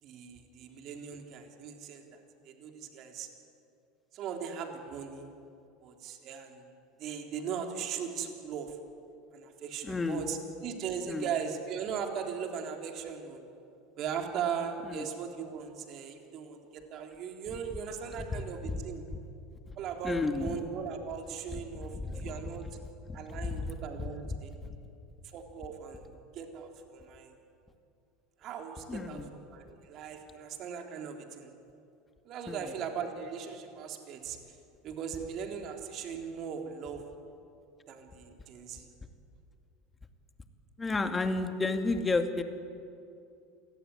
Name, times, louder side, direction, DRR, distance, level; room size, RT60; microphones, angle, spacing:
voice 1, 0.0-3.3 4.1-5.3 5.8-6.7 7.0-8.8 9.3-13.4 14.0-19.0 19.8-22.7 23.1-24.6 25.2-27.3 28.4-31.5 32.2-34.4 34.8-37.0 37.9-38.9, right 7 dB, 50° right, 3 dB, 3.7 m, -39 dB
voice 2, 9.8-10.2 11.1-11.3 14.9-15.1 18.2-18.3 19.1-19.2 20.0-20.6 21.5-21.6 21.9-22.3 23.1-23.7 24.0-24.1 28.9-29.3 32.5-32.6 40.8-42.4, left 3 dB, 20° left, 7 dB, 2.5 m, -32 dB
28.0 x 18.0 x 9.9 m, 2.6 s
hypercardioid pair, 80°, 0 cm